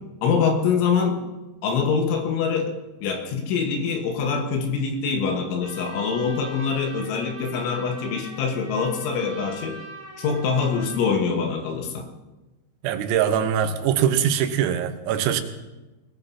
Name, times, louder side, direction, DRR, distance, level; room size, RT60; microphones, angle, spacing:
voice 1, 0.2-1.2 1.6-2.7 3.0-9.8 10.2-12.1, left 5 dB, 75° left, 4 dB, 3.5 m, -24 dB
Trumpet, 5.6-11.1, right 2 dB, 5° right, 1.4 m, -42 dB
voice 2, 12.8-15.4, right 9 dB, 85° right, 8 dB, 3.7 m, -22 dB
21.5 x 18.5 x 2.8 m, 1.1 s
omnidirectional pair, 5.9 m